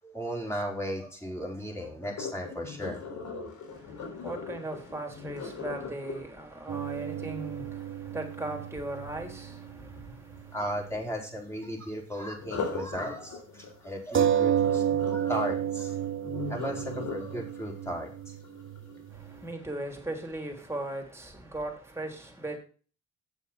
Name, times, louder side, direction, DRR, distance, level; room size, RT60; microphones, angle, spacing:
voice 1, 0.0-3.0 10.5-15.9 16.5-18.3, equal, 10° left, 4.5 m, -36 dB
Sink (filling or washing), 2.0-8.0 12.4-19.4 19.9-20.2 20.7-20.8, left 5 dB, 80° left, 3.7 m, -40 dB
voice 2, 3.7-10.6 19.1-22.6, right 1 dB, 10° right, 3.5 m, -38 dB
sound 1, 6.7-10.6 10.8-10.9 14.1-19.4, right 9 dB, 40° right, 0.8 m, -31 dB
8.3 x 7.2 x 5.7 m
cardioid pair, 90°, 30 cm